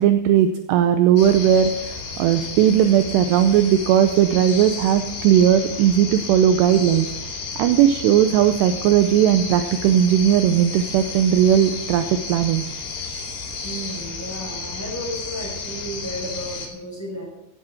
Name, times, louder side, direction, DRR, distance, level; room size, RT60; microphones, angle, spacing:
voice 1, 0.0-1.7 2.2-7.1 7.6-12.7, right 10 dB, 80° right, 8 dB, 2.6 m, -17 dB
sound 1, 1.2-16.7, left 4 dB, 65° left, 4.9 m, -32 dB
voice 2, 13.6-17.2, equal, 5° left, -3 dB, 5.9 m, -33 dB
17.0 x 11.5 x 4.5 m, 0.83 s
omnidirectional pair, 5.4 m